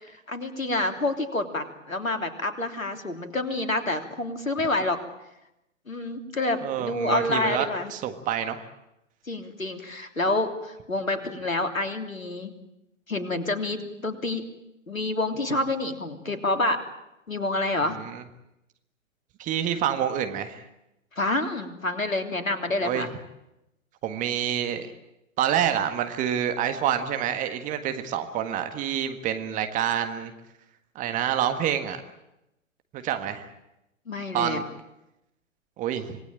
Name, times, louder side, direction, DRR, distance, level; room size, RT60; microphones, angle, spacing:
voice 1, 0.3-5.0 5.9-7.9 9.3-12.5 13.1-14.4 14.9-16.8 17.3-18.0 21.2-23.1 34.1-34.6, left 2 dB, 80° left, 6 dB, 3.3 m, -28 dB
voice 2, 6.6-8.6 17.8-18.2 19.4-20.6 22.8-23.1 24.0-24.9 25.4-30.3 30.9-32.0 32.9-33.4 34.3-34.6 35.8-36.2, right 9 dB, 20° right, 8 dB, 1.6 m, -27 dB
26.0 x 19.0 x 8.9 m, 0.90 s
figure-of-eight pair, 120°, 40 cm